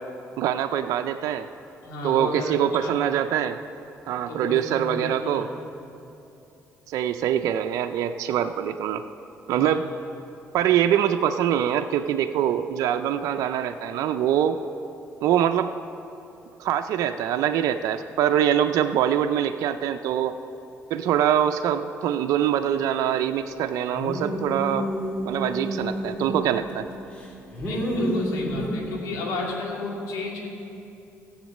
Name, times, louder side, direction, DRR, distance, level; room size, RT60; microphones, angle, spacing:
voice 1, 0.4-1.5 2.0-3.6 4.1-5.5 6.9-9.0 9.5-9.9 10.5-14.6 15.2-15.8 16.6-20.4 20.9-24.9 25.2-26.9, right 10 dB, 75° right, 8 dB, 0.4 m, -24 dB
voice 2, 1.8-3.0 4.3-5.6 9.5-9.8 27.6-30.5, left 2 dB, 85° left, -2 dB, 2.4 m, -33 dB
sound 1, 23.9-26.8 27.2-28.7, equal, 25° left, 3.5 m, -29 dB
14.5 x 8.0 x 6.4 m, 2.8 s
supercardioid pair, 70°, 6 cm